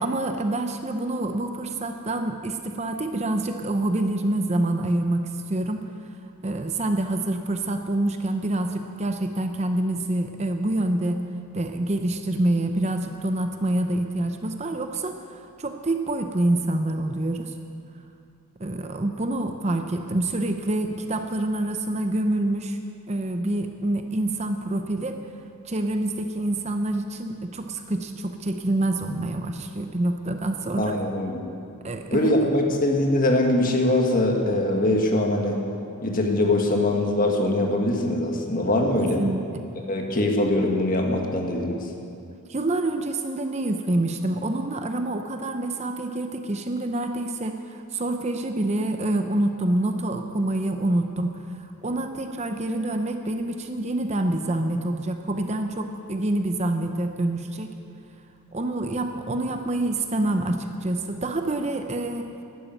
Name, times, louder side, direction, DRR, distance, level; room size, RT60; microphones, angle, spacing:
voice 1, 0.0-5.8 6.4-11.2 11.5-17.5 18.6-22.8 23.1-25.2 25.6-31.0 31.8-32.4 39.2-39.6 42.5-57.7 58.5-62.4, right 1 dB, 30° right, 6 dB, 0.7 m, -26 dB
voice 2, 30.8-31.4 32.1-35.6 36.0-39.2 39.9-41.8, left 1 dB, 40° left, 2 dB, 1.7 m, -22 dB
12.0 x 11.5 x 9.0 m, 2.6 s
head